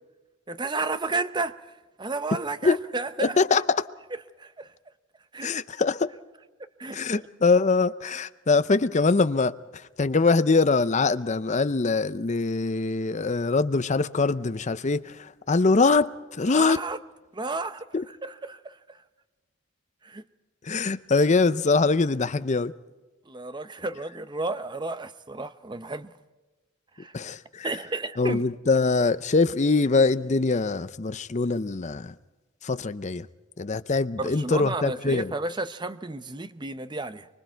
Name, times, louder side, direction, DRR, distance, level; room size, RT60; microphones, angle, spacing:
voice 1, 0.5-1.5 2.0-3.4 4.4-4.7 5.3-5.6 6.8-7.0 16.5-17.0 17.3-17.9 18.2-19.0 20.0-20.2 23.3-26.1 27.0-27.1 27.6-28.4 34.2-37.3, right 3 dB, 20° right, 0.7 m, -32 dB
voice 2, 3.2-3.9 5.4-6.1 6.9-16.8 17.9-18.0 20.6-22.7 27.1-27.7 28.2-32.1 32.6-33.3 33.6-35.3, left 3 dB, 35° left, 0.6 m, -23 dB
24.5 x 24.5 x 4.6 m
head